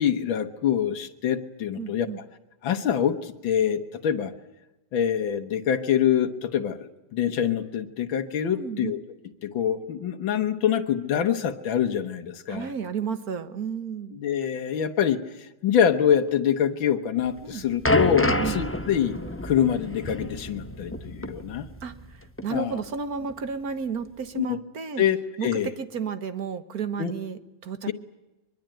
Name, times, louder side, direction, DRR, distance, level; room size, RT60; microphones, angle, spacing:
voice 1, 0.0-2.1 2.6-4.3 4.9-9.0 9.4-12.7 14.1-21.7 22.5-22.8 24.4-24.6 25.0-25.7 27.0-27.1 27.9-28.0, left 9 dB, 85° left, 6 dB, 2.0 m, -25 dB
voice 2, 1.8-2.2 8.4-8.9 12.5-14.2 17.4-17.6 18.2-18.6 21.8-25.0 25.4-27.9, right 6 dB, 50° right, 10 dB, 1.8 m, -32 dB
sound 1, 17.2-22.1 22.4-22.6 23.3-23.4, left 1 dB, 15° left, 0.5 m, -28 dB
23.0 x 22.5 x 9.1 m, 1.0 s
omnidirectional pair, 2.1 m